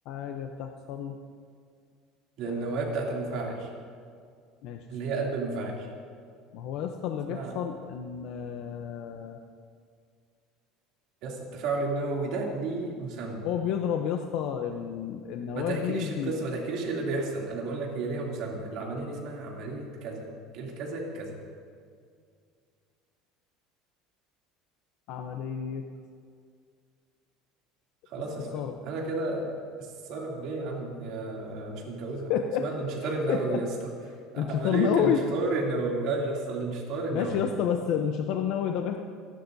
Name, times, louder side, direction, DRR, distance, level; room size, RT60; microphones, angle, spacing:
voice 1, 0.1-1.2 2.4-2.7 3.1-3.5 4.6-4.8 6.5-9.4 13.4-16.3 25.1-25.8 28.5-28.8 32.3-32.7 33.0-33.6 34.3-35.2 37.1-39.0, left 8 dB, 55° left, 4 dB, 0.7 m, -30 dB
voice 2, 2.4-3.7 4.9-5.9 7.3-7.5 11.2-13.4 15.5-20.3 20.5-21.4 28.1-29.6 30.1-32.3 32.6-33.7 34.3-37.4, right 3 dB, 50° right, -2 dB, 2.8 m, -32 dB
27.5 x 11.5 x 2.7 m, 2.2 s
cardioid pair, 170°, 0 cm